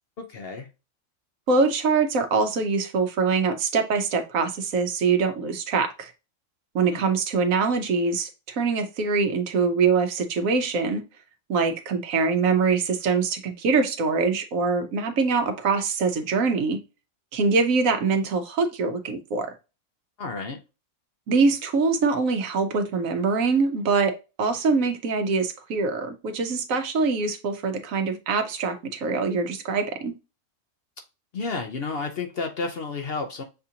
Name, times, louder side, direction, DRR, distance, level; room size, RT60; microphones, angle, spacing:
voice 1, 0.2-0.7 6.9-7.0 20.2-20.6 31.3-33.4, left 4 dB, 55° left, 0.7 m, -31 dB
voice 2, 1.5-6.1 6.7-11.0 11.5-16.8 17.3-19.5 21.3-30.1, right 4 dB, 70° right, 1.2 m, -24 dB
6.6 x 2.5 x 2.7 m
omnidirectional pair, 1.5 m